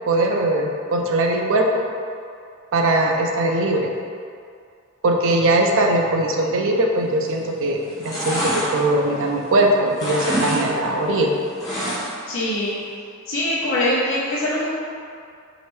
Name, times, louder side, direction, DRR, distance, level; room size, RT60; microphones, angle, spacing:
voice 1, 0.1-1.6 2.7-3.9 5.0-11.4, right 1 dB, 65° right, 1 dB, 0.5 m, -20 dB
sound 1, 7.2-7.5 7.8-9.6 9.9-10.6 10.9-12.3 12.6-12.7, right 1 dB, 15° left, 1.3 m, -26 dB
voice 2, 12.3-12.7 13.3-14.6, left 1 dB, 65° left, -10 dB, 0.9 m, -22 dB
4.9 x 3.2 x 3.1 m, 2.3 s
head